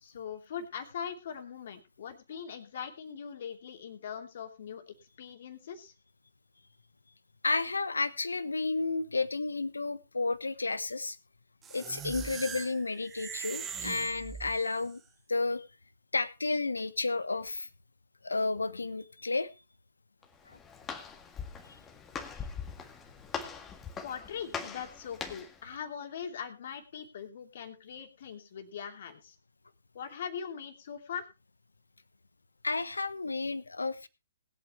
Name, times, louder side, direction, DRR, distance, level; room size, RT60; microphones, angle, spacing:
voice 1, 0.0-5.9 24.0-29.3 29.9-31.3, left 7 dB, 55° left, 4 dB, 2.9 m, -41 dB
voice 2, 7.4-11.2 11.7-15.0 15.3-15.6 16.1-17.7 18.2-19.5 20.5-20.6 32.6-34.1, left 3 dB, 80° left, 15 dB, 1.1 m, -32 dB
sound 1, 11.6-14.9, right 7 dB, 15° right, 1.1 m, -41 dB
Walk footsteps, 20.2-25.6, left 6 dB, 15° left, 1.9 m, -41 dB
20.5 x 8.6 x 3.2 m, 0.28 s
figure-of-eight pair, 125°, 0 cm